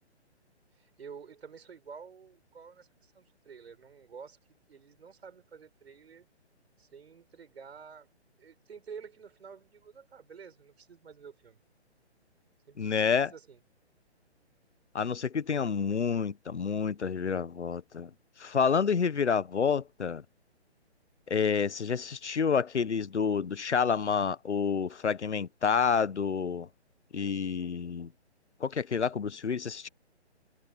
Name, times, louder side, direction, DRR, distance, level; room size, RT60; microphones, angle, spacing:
voice 1, 0.8-4.4 4.7-6.3 6.8-8.1 8.4-11.6 12.7-13.6, right 6 dB, 65° right, 4.9 m, -49 dB
voice 2, 12.8-13.3 14.9-18.1 18.4-20.2 21.3-26.7 27.1-28.1 28.6-29.9, left 6 dB, 80° left, 1.0 m, -29 dB
figure-of-eight pair, 140°, 34 cm